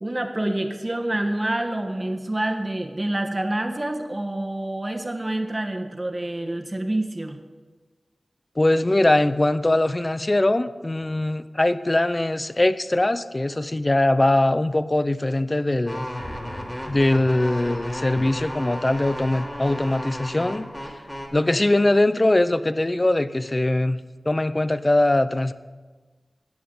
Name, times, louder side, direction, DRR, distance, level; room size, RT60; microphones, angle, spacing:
voice 1, 0.0-7.4, right 1 dB, 30° right, 4 dB, 1.2 m, -27 dB
voice 2, 8.6-16.1 16.9-21.0 21.3-25.5, left 1 dB, 30° left, 13 dB, 0.5 m, -21 dB
sound 1, 15.9-21.3, equal, 15° left, 2.1 m, -33 dB
15.5 x 9.1 x 3.9 m, 1.3 s
wide cardioid pair, 55°, 0 cm